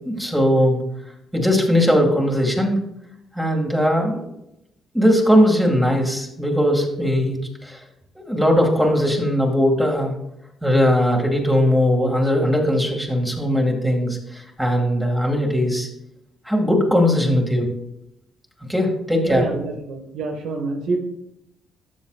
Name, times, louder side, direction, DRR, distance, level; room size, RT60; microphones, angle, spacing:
voice 1, 0.1-0.8 1.3-2.8 3.4-4.2 4.9-7.4 7.6-7.8 8.2-10.1 10.6-15.9 16.5-17.7 18.7-19.5, equal, 5° right, 0 dB, 2.1 m, -19 dB
voice 2, 19.2-21.0, right 3 dB, 80° right, 3 dB, 1.5 m, -26 dB
12.5 x 7.2 x 2.4 m, 0.83 s
cardioid pair, 90°, 0 cm